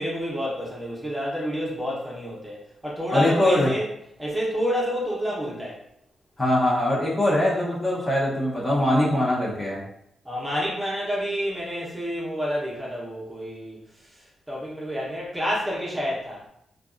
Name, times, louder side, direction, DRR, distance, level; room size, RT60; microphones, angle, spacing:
voice 1, 0.0-3.9 4.2-5.8 10.2-13.8 14.1-16.4, equal, 10° right, -5 dB, 0.9 m, -29 dB
voice 2, 3.1-3.7 6.4-9.8, left 1 dB, 25° left, -6 dB, 0.8 m, -22 dB
2.5 x 2.3 x 2.5 m, 0.78 s
cardioid pair, 70°, 0 cm